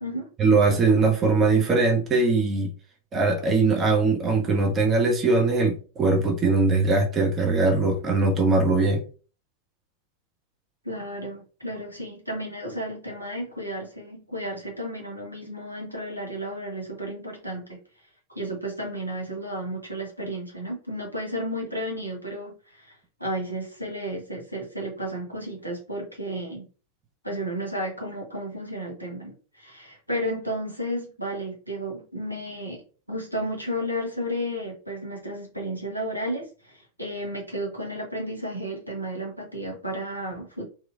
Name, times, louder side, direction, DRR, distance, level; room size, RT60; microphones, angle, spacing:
voice 1, 0.4-2.7 3.1-9.0, right 3 dB, 25° right, 0.7 m, -21 dB
voice 2, 10.8-17.8 18.3-26.7 27.2-32.8 33.1-40.7, equal, 90° right, 1.0 m, -33 dB
2.8 x 2.7 x 2.4 m
figure-of-eight pair, 90°, 0 cm